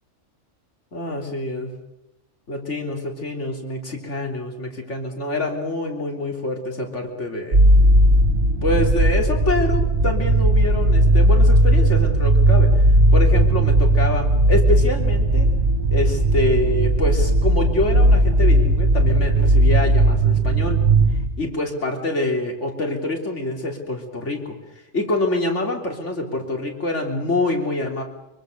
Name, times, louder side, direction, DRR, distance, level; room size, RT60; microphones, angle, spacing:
voice 1, 0.9-1.7 2.5-7.6 8.6-12.8 13.1-15.5 15.9-20.8 21.4-24.6 24.9-28.0, left 2 dB, 70° left, 3 dB, 3.7 m, -26 dB
sound 1, 7.5-21.3, right 1 dB, 60° right, 1.8 m, -16 dB
24.0 x 23.5 x 6.7 m, 0.87 s
omnidirectional pair, 1.3 m